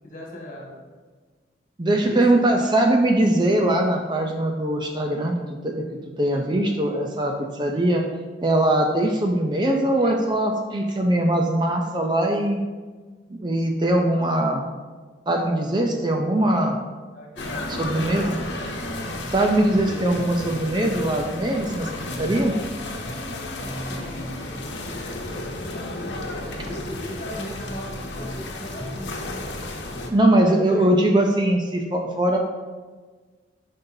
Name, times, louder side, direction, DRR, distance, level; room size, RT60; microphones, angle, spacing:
voice 1, 0.0-0.8 1.8-2.7 17.1-18.4 19.9-20.0 23.6-26.2 26.6-29.1 30.1-30.8, equal, 45° left, -2 dB, 1.8 m, -38 dB
voice 2, 1.8-5.4 5.6-5.8 6.2-8.0 8.4-12.6 13.4-14.6 15.3-16.8 17.7-18.4 19.3-21.9 22.2-22.6 30.1-32.4, right 1 dB, 25° right, 2 dB, 0.5 m, -21 dB
sound 1, 17.4-30.1, left 1 dB, 80° left, 1.0 m, -33 dB
10.5 x 5.5 x 2.7 m, 1.4 s
head